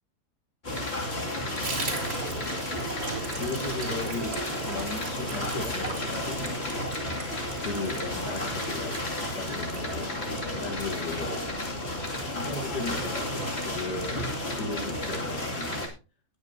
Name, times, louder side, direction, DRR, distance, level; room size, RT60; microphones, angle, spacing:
sound 1, 0.6-15.9, left 1 dB, 35° left, 2.7 m, -32 dB
Water tap faucet / Bathtub (filling or washing), 1.6-12.6 12.9-13.0 13.3-13.4 13.7-14.2 14.5-14.6 14.8-14.9, right 4 dB, 65° right, 3.9 m, -40 dB
voice 1, 3.2-6.9 7.6-11.4 12.3-14.3 14.6-15.9, left 3 dB, 70° left, 2 dB, 2.8 m, -36 dB
19.0 x 9.6 x 2.7 m, 0.32 s
omnidirectional pair, 1.9 m